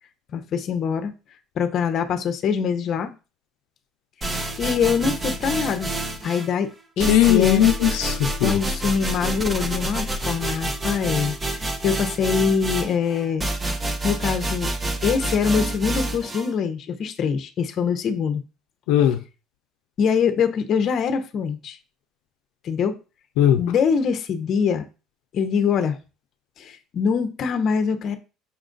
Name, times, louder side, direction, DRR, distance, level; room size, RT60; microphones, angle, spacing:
voice 1, 0.3-1.1 1.6-3.1 4.6-5.9 6.2-6.7 7.0-7.7 8.4-11.3 11.6-13.4 14.0-14.7 15.0-18.4 20.0-21.8 22.6-22.9 23.6-24.8 25.3-26.0 26.6-28.2, left 6 dB, 45° left, 0.7 m, -23 dB
sound 1, 4.2-6.5 7.0-16.5, right 1 dB, 20° right, 0.7 m, -28 dB
voice 2, 7.1-8.6 18.9-19.2 23.4-23.6, left 11 dB, 90° left, 0.5 m, -18 dB
5.8 x 2.4 x 3.8 m
cardioid pair, 125°, 0 cm